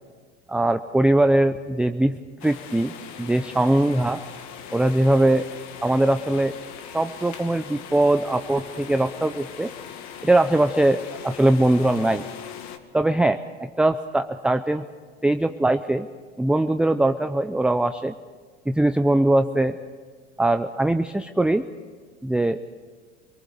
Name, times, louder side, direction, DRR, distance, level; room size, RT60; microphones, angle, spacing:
voice 1, 0.5-2.9 3.2-4.2 4.7-5.5 5.8-6.5 6.8-9.7 10.2-12.2 12.9-14.8 15.2-16.1 16.4-18.1 18.7-19.8 20.4-21.6 22.2-22.6, right 1 dB, 5° right, 8 dB, 0.6 m, -21 dB
sound 1, 2.4-12.8, left 8 dB, 55° left, 1.9 m, -40 dB
26.5 x 19.5 x 6.8 m, 1.5 s
hypercardioid pair, 80°, 34 cm